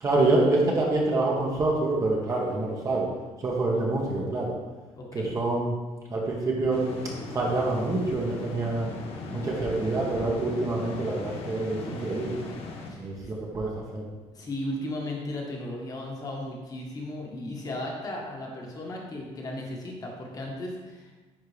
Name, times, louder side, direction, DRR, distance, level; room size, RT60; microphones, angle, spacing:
voice 1, 0.0-3.1 3.4-4.5 5.1-5.7 6.1-7.0 7.3-8.9 9.3-12.4 13.0-14.0, right 2 dB, 30° right, -3 dB, 1.1 m, -26 dB
voice 2, 5.0-5.3 12.9-13.5 14.3-21.2, left 1 dB, 35° left, -1 dB, 1.4 m, -36 dB
sound 1, 6.7-12.9, left 3 dB, 65° left, 1.0 m, -38 dB
10.0 x 3.7 x 3.2 m, 1.2 s
cardioid pair, 145°, 11 cm